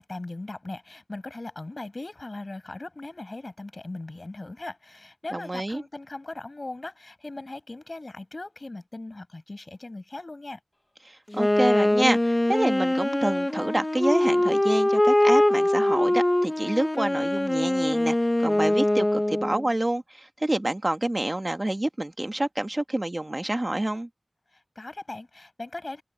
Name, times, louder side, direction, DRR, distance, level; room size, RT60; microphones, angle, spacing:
voice 1, 0.0-10.6 24.5-26.0, left 2 dB, 50° left, 7.7 m, -39 dB
voice 2, 5.3-5.8 11.0-18.1 18.4-24.1, right 1 dB, 30° right, 1.5 m, -28 dB
Wind instrument woodwind instrument, 11.3-19.7, left 1 dB, 25° left, 1.1 m, -23 dB
wide cardioid pair, 50°, 0 cm